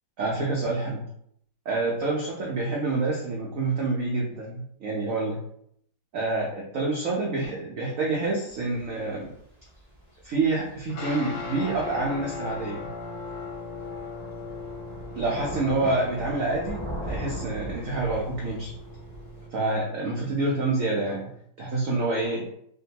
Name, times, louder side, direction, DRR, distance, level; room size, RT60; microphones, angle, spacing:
voice 1, 0.2-1.1 1.7-5.4 6.1-9.3 10.2-12.8 15.1-18.7 19.5-21.2 21.6-22.5, right 2 dB, 80° right, -3 dB, 0.7 m, -27 dB
Thunder / Rain, 8.5-19.5, equal, 60° left, 0.4 m, -40 dB
sound 1, 10.9-21.4, left 3 dB, 85° left, 1.7 m, -39 dB
3.5 x 2.2 x 2.8 m, 0.70 s
omnidirectional pair, 2.1 m